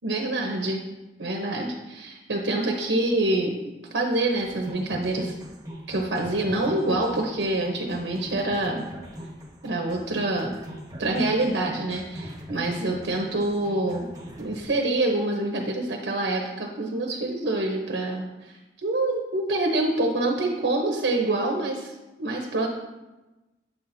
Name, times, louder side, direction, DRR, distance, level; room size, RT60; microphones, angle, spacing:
voice 1, 0.0-0.8 1.2-3.5 3.9-5.4 5.9-8.8 9.6-10.5 11.0-14.1 14.4-18.5 18.8-22.7, right 2 dB, 85° right, 1 dB, 0.8 m, -26 dB
sound 1, 4.3-14.6, equal, 20° right, 1.0 m, -41 dB
7.6 x 5.8 x 2.6 m, 1.1 s
head